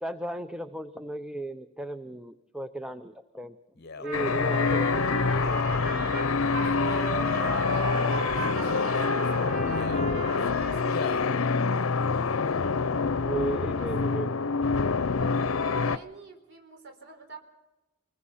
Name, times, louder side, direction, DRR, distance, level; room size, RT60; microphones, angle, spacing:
voice 1, 0.0-3.6 4.0-5.6 13.2-14.4, right 1 dB, 5° right, 9 dB, 0.7 m, -35 dB
Male speech man speaking, 3.8-4.1 5.3-5.7 6.8-7.3 8.2-8.7 9.6-10.1 10.8-11.3 12.0-12.1, left 4 dB, 55° left, 1.0 m, -40 dB
Trumpet, 4.0-11.4, right 2 dB, 90° right, 3.9 m, -35 dB
sound 1, 4.1-16.0, left 4 dB, 85° left, 0.7 m, -26 dB
voice 2, 6.1-11.4 13.5-13.9 14.6-17.4, right 2 dB, 60° right, 4 dB, 4.6 m, -47 dB
25.5 x 22.0 x 5.7 m, 0.96 s
head